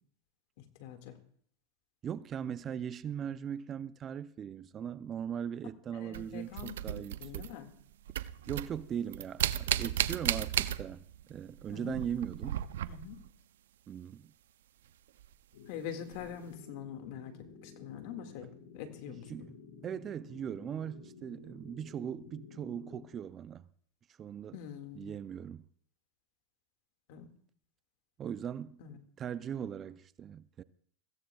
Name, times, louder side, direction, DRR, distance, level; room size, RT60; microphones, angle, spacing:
voice 1, 0.8-1.2 5.9-7.7 11.7-12.0 12.9-13.2 15.7-17.3 17.6-19.3 24.5-25.1 27.1-27.3 28.8-29.0, left 9 dB, 60° left, 1.9 m, -44 dB
voice 2, 2.0-7.5 8.5-12.6 13.9-14.3 19.1-19.6 19.8-23.7 24.2-24.6 24.9-25.6 28.2-28.8 29.2-30.6, right 8 dB, 30° right, 0.5 m, -39 dB
sound 1, 6.1-11.2 11.5-13.3 15.2-15.3 16.1-16.3, right 11 dB, 80° right, 0.5 m, -34 dB
sound 2, 15.5-23.1, left 5 dB, 80° left, 5.1 m, -53 dB
22.5 x 15.5 x 2.3 m
supercardioid pair, 125°, 0 cm